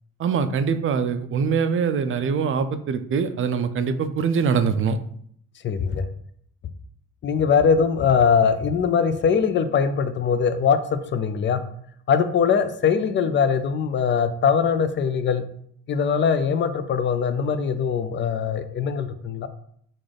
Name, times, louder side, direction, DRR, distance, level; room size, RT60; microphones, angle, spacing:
voice 1, 0.2-5.0, right 6 dB, 45° right, 10 dB, 0.4 m, -23 dB
voice 2, 5.6-6.1 7.2-11.7 12.1-15.5 15.9-19.5, left 6 dB, 40° left, 11 dB, 0.4 m, -21 dB
3.9 x 2.5 x 3.3 m, 0.65 s
cardioid pair, 90°, 30 cm